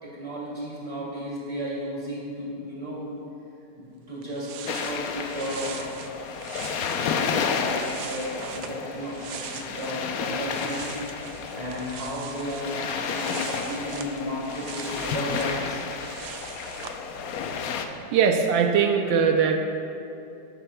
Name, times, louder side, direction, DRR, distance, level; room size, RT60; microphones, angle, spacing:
voice 1, 0.0-3.0 3.8-6.0 7.1-10.9 11.5-15.8, equal, 20° right, -6 dB, 2.3 m, -34 dB
sound 1, 3.9-4.0 4.2-10.1 10.3-17.0, right 8 dB, 70° right, 1.1 m, -42 dB
sound 2, 4.6-17.8, left 6 dB, 75° left, 0.8 m, -31 dB
voice 2, 17.9-19.6, right 6 dB, 90° right, 4 dB, 1.4 m, -21 dB
11.5 x 10.0 x 2.2 m, 2.7 s
omnidirectional pair, 2.0 m